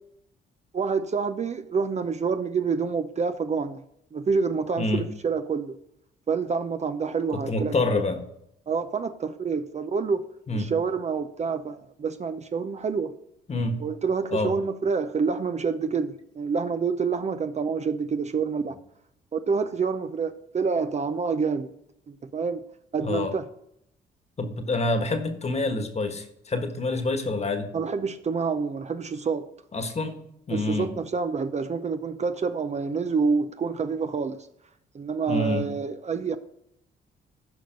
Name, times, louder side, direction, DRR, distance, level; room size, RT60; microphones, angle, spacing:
voice 1, 0.7-3.8 4.1-5.8 6.3-7.9 8.7-10.2 10.5-13.1 13.8-18.8 19.3-21.7 22.1-22.6 22.9-23.4 27.7-29.5 30.5-34.5 34.9-36.4, right 5 dB, 35° right, 0.6 m, -27 dB
voice 2, 4.8-5.1 7.3-8.2 10.5-10.7 13.5-13.8 14.3-14.5 23.0-23.3 24.4-27.7 29.7-30.2 30.5-30.9 35.3-35.7, left 2 dB, 35° left, 1.4 m, -27 dB
13.5 x 5.2 x 5.2 m
cardioid pair, 90°, 20 cm